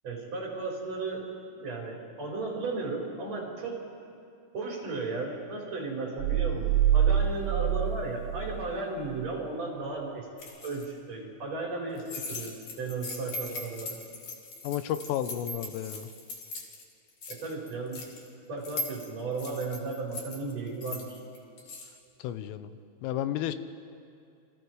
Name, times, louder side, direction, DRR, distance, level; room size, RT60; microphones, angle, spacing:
voice 1, 0.0-3.8 4.5-10.3 10.6-12.0 12.3-14.0 17.3-18.0 18.5-21.2, right 3 dB, 35° right, -3 dB, 5.3 m, -35 dB
sound 1, 6.2-8.8 9.1-9.2, right 10 dB, 80° right, 2.9 m, -26 dB
sound 2, 10.4-10.8 12.0-16.8 17.1-18.3 18.6-21.9, left 2 dB, 45° left, 3.2 m, -40 dB
voice 2, 14.6-16.1 22.2-22.7 23.0-23.6, left 11 dB, 85° left, 11 dB, 3.4 m, -32 dB
29.0 x 25.5 x 4.7 m, 2.4 s
omnidirectional pair, 5.7 m